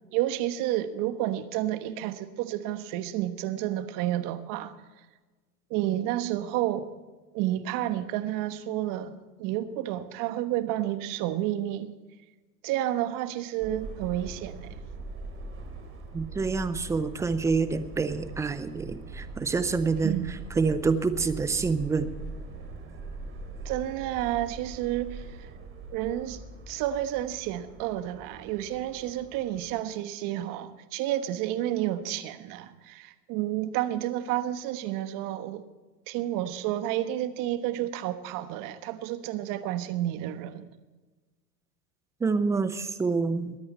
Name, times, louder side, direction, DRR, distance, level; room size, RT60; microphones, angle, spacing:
voice 1, 0.1-4.7 5.7-6.9 7.3-11.9 12.6-14.8 20.0-20.4 23.6-25.5 25.9-26.4 26.7-35.7 36.1-40.7, right 13 dB, 40° right, 1.3 m, -30 dB
Subway metro underground, 13.6-29.7, right 3 dB, 25° right, 3.1 m, -42 dB
voice 2, 16.1-20.1 20.6-22.1 42.2-43.6, right 4 dB, 5° right, 0.4 m, -27 dB
22.5 x 9.7 x 4.3 m
hypercardioid pair, 115°, 49 cm